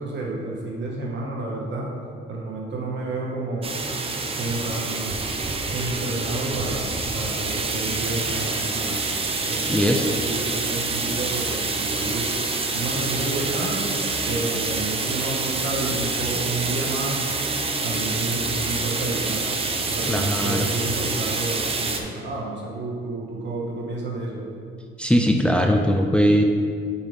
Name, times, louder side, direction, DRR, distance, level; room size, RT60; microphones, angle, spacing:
voice 1, 0.0-1.9 2.3-4.1 4.3-5.1 5.7-9.0 9.5-12.3 12.7-13.9 14.3-17.2 17.5-19.5 19.9-24.4, right 2 dB, 65° right, -3 dB, 1.7 m, -30 dB
sound 1, 3.6-22.0, right 3 dB, 30° right, 0.7 m, -27 dB
voice 2, 9.7-10.1 20.1-20.7 25.0-26.4, equal, 5° left, 2 dB, 0.4 m, -20 dB
7.2 x 5.5 x 3.5 m, 2.2 s
cardioid pair, 90°, 20 cm